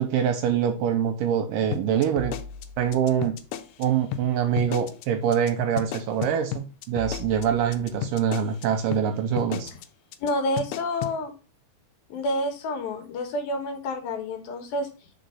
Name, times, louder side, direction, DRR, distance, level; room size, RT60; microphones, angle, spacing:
voice 1, 0.0-2.3 2.8-3.3 3.8-9.7, right 8 dB, 75° right, 6 dB, 2.1 m, -24 dB
sound 1, 1.7-3.8 4.1-4.2 4.6-5.0 5.3-5.5 5.8-8.6 8.9-9.0 9.4-9.8 10.1-10.3 10.6-11.1, left 8 dB, 90° left, 2.7 m, -33 dB
voice 2, 10.2-11.3 12.1-14.9, left 1 dB, 75° left, 5 dB, 2.9 m, -28 dB
5.2 x 4.5 x 5.4 m, 0.36 s
omnidirectional pair, 4.5 m